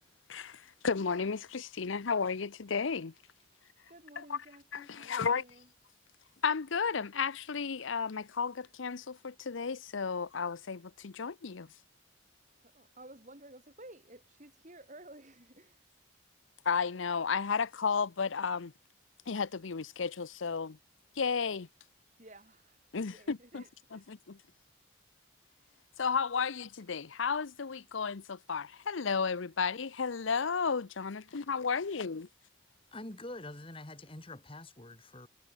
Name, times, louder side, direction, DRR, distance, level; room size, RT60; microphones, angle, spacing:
voice 1, 0.3-3.1 4.2-4.4 4.7-5.4 6.4-11.7 16.6-18.7 19.3-20.8 21.2-21.7 22.9-23.6 23.9-24.4 26.0-32.3, left 5 dB, 80° left, 0.7 m, -33 dB
voice 2, 3.9-5.7 12.6-15.9 22.2-22.8 23.0-24.1, right 1 dB, 40° right, 4.2 m, -54 dB
voice 3, 32.9-35.3, left 2 dB, 25° left, 1.9 m, -45 dB
head